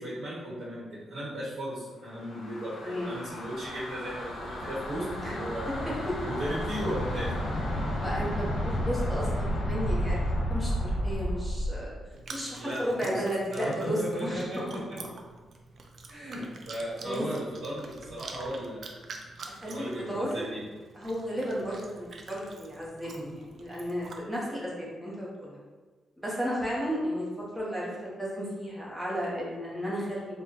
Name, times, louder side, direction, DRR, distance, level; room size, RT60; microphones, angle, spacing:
voice 1, 0.0-5.9 6.2-7.4 12.5-13.2 13.5-15.0 16.1-18.9 19.7-20.6, right 1 dB, 85° right, -8 dB, 1.1 m, -36 dB
sound 1, 2.1-11.8, equal, 70° left, 0.8 m, -32 dB
voice 2, 2.8-3.2 5.2-5.3 6.1-6.2 8.0-10.2 10.5-12.0 12.3-14.8 16.2-16.3 17.1-17.3 19.5-20.4 20.9-25.6 26.2-27.3 27.5-30.4, equal, ahead, -6 dB, 0.8 m, -33 dB
Chewing mastication, 12.1-24.2, right 3 dB, 45° right, 0.3 m, -47 dB
4.1 x 2.1 x 2.9 m, 1.3 s
wide cardioid pair, 165°, 0 cm